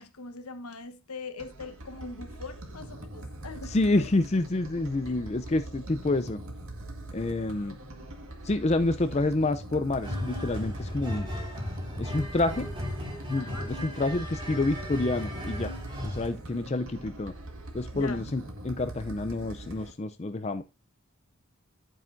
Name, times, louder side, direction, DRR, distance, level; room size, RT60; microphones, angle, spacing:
voice 1, 0.0-4.1 13.4-13.8 17.9-18.2, left 3 dB, 85° left, 1.2 m, -42 dB
sound 1, 1.4-19.9, right 1 dB, 70° right, 1.9 m, -42 dB
voice 2, 3.7-6.4 7.1-7.8 8.4-11.3 12.0-12.7 13.3-15.7 16.0-17.3 17.7-20.6, left 2 dB, 30° left, 0.4 m, -28 dB
sound 2, 10.0-16.3, left 1 dB, 20° right, 4.5 m, -36 dB
8.8 x 8.6 x 2.6 m
head